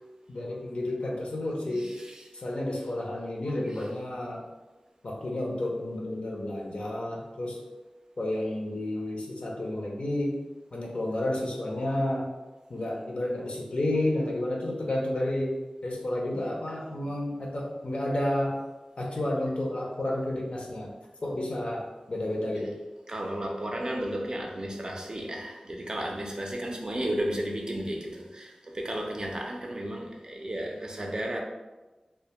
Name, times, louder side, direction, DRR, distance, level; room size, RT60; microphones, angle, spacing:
voice 1, 0.3-2.0 2.3-4.4 5.0-7.6 8.2-10.4 10.7-12.3 12.7-15.5 15.8-18.6 19.0-20.9 21.2-22.7, left 1 dB, 60° left, -2 dB, 0.5 m, -31 dB
voice 2, 1.8-2.3 23.1-31.4, right 1 dB, 35° right, 0 dB, 0.4 m, -33 dB
2.1 x 2.1 x 2.9 m, 1.2 s
wide cardioid pair, 60°, 2 cm